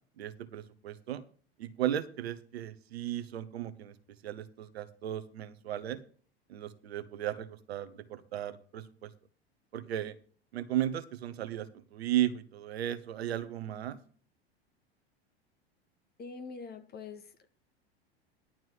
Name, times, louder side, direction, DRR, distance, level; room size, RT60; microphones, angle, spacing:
voice 1, 0.2-1.2 1.6-3.9 4.2-6.0 6.5-9.1 9.7-10.1 10.5-14.0, right 12 dB, 80° right, 12 dB, 1.2 m, -35 dB
voice 2, 16.2-17.5, left 4 dB, 30° left, 9 dB, 1.8 m, -44 dB
11.5 x 4.6 x 7.5 m, 0.43 s
hypercardioid pair, 90°, 31 cm